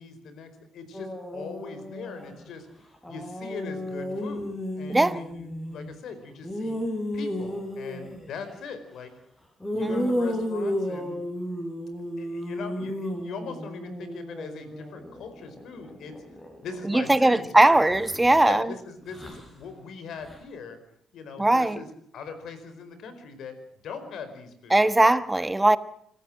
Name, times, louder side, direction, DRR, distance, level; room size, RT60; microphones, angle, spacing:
voice 1, 0.0-2.7 3.1-6.8 7.1-9.1 9.7-11.2 12.2-16.1 16.6-17.9 18.4-20.8 21.1-21.9 22.1-23.6 23.8-25.2, left 5 dB, 75° left, 4.8 m, -40 dB
sound 1, 0.9-2.4 2.9-6.0 6.4-8.3 9.6-17.2 17.8-18.4 19.0-19.5 20.2-20.4, left 1 dB, 10° left, 6.4 m, -33 dB
voice 2, 4.9-5.2 9.7-10.2 16.8-18.7 21.4-21.8 24.7-25.8, right 2 dB, 10° right, 1.2 m, -20 dB
26.5 x 14.5 x 7.6 m
cardioid pair, 90°, 0 cm